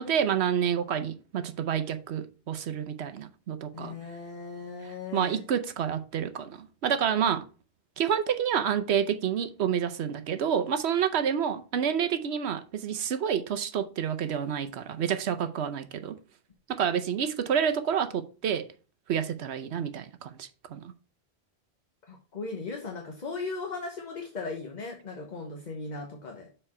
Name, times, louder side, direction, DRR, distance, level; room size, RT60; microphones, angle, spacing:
voice 1, 0.0-3.9 4.8-7.4 8.0-16.2 16.7-18.7 19.1-20.9, right 8 dB, 80° right, 1.0 m, -29 dB
voice 2, 3.7-5.4 22.1-26.5, left 4 dB, 45° left, 1.1 m, -37 dB
6.9 x 4.4 x 4.2 m
omnidirectional pair, 1.1 m